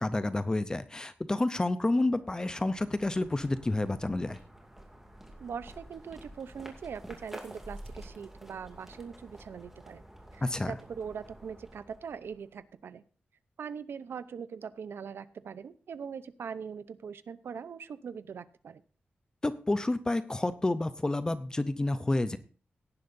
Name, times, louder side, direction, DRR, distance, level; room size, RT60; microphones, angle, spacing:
voice 1, 0.0-4.4 10.4-10.8 19.4-22.4, left 2 dB, 20° left, 13 dB, 0.6 m, -29 dB
sound 1, 2.0-12.7, right 1 dB, 10° right, 2.4 m, -50 dB
voice 2, 5.4-10.0 10.3-13.0 13.6-18.8, right 6 dB, 85° right, 14 dB, 0.7 m, -41 dB
17.5 x 10.5 x 2.6 m, 0.40 s
wide cardioid pair, 145°, 4 cm